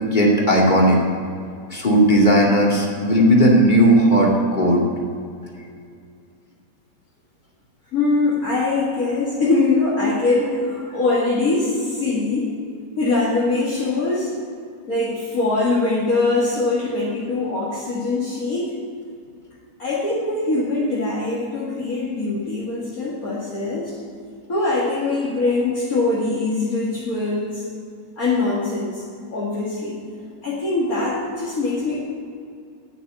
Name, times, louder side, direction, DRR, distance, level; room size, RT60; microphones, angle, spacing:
voice 1, 0.0-1.0 1.7-4.8, equal, 25° left, -2 dB, 2.4 m, -16 dB
voice 2, 7.9-12.5 13.0-14.3 14.9-18.7 19.8-24.0 24.5-27.6 28.2-29.0 29.3-30.0 30.4-32.0, left 3 dB, 55° left, -7 dB, 2.5 m, -22 dB
9.9 x 9.6 x 8.3 m, 2.3 s
omnidirectional pair, 1.8 m